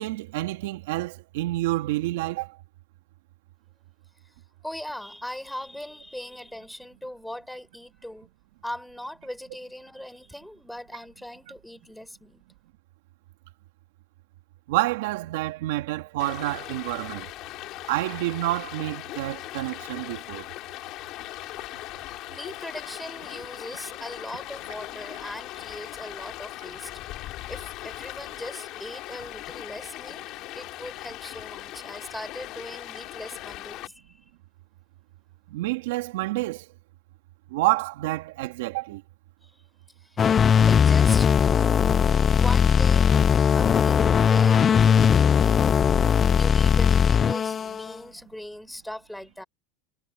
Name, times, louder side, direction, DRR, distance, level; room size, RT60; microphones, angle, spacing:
voice 1, 0.0-2.6 14.7-17.3 17.9-20.5 35.5-36.7 37.5-39.0, right 18 dB, 75° right, 2.1 m, -28 dB
voice 2, 4.6-8.3 8.6-12.4 22.3-26.9 27.5-30.2 30.6-34.0 39.4-39.5 40.0-40.3 40.6-41.3 42.3-43.2 43.5-45.7 46.3-49.4, left 1 dB, 5° left, 5.5 m, -39 dB
Stream, 16.2-33.9, left 17 dB, 50° left, 4.2 m, -39 dB
sound 1, 40.2-47.9, left 7 dB, 25° left, 0.4 m, -19 dB
supercardioid pair, 120°, 0 cm